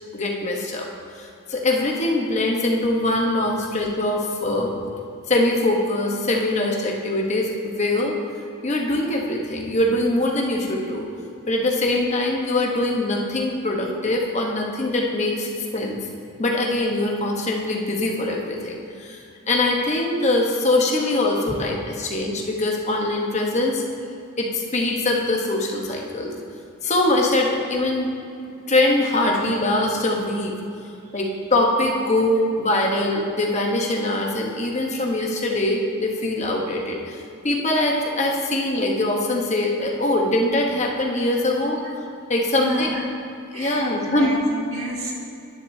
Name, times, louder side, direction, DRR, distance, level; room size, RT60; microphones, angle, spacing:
voice 1, 0.1-0.9 1.2-4.8 5.3-8.2 8.6-11.1 11.5-16.0 16.4-23.8 24.4-26.3 26.8-28.1 28.7-30.5 31.1-41.8 42.3-42.9 43.5-44.3, left 1 dB, 30° left, 0 dB, 1.1 m, -23 dB
voice 2, 42.5-43.0 43.5-45.1, right 1 dB, 75° right, -2 dB, 1.9 m, -32 dB
10.5 x 10.0 x 2.8 m, 2.6 s
head